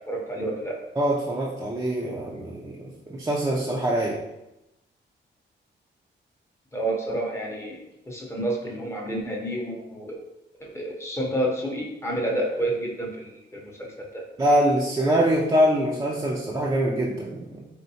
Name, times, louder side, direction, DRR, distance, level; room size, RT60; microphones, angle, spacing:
voice 1, 0.1-0.8 6.7-10.2 10.6-14.2, right 1 dB, 15° left, -2 dB, 0.7 m, -29 dB
voice 2, 1.0-4.2 14.4-17.7, equal, 15° right, -4 dB, 0.4 m, -24 dB
4.4 x 3.5 x 2.7 m, 0.93 s
wide cardioid pair, 165°, 19 cm